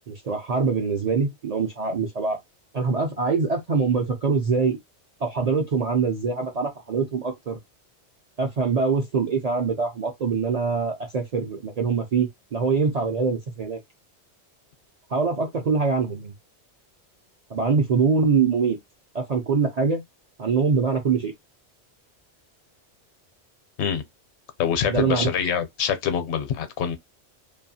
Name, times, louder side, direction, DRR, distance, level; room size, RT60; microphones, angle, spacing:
voice 1, 0.1-2.4 2.7-4.8 5.2-7.6 8.4-13.8 15.1-16.3 17.5-18.8 19.1-20.0 20.4-21.3 24.8-25.3, right 5 dB, 50° right, 0.5 m, -24 dB
voice 2, 24.6-27.0, left 8 dB, 75° left, 0.8 m, -25 dB
2.7 x 2.4 x 2.6 m
omnidirectional pair, 1.2 m